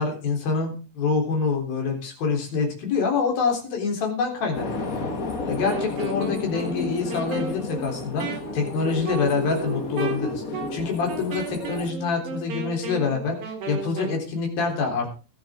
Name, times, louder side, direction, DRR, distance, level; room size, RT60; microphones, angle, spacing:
voice 1, 0.0-5.1 5.5-10.4 10.7-15.2, left 5 dB, 90° left, 2 dB, 5.6 m, -26 dB
sound 1, 4.5-11.9, left 3 dB, 50° left, 1.0 m, -32 dB
Wind instrument woodwind instrument, 5.5-14.2, right 5 dB, 60° right, 3.8 m, -35 dB
23.0 x 9.1 x 3.7 m, 0.33 s
omnidirectional pair, 4.1 m